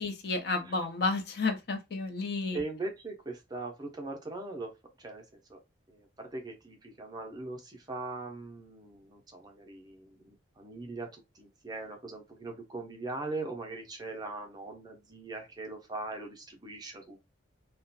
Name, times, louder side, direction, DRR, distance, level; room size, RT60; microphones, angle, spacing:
voice 1, 0.0-2.6, left 3 dB, 55° left, 0.5 m, -31 dB
voice 2, 2.5-5.2 5.5-5.6 5.9-17.2, right 2 dB, 20° right, 0.5 m, -40 dB
2.3 x 2.1 x 2.6 m
head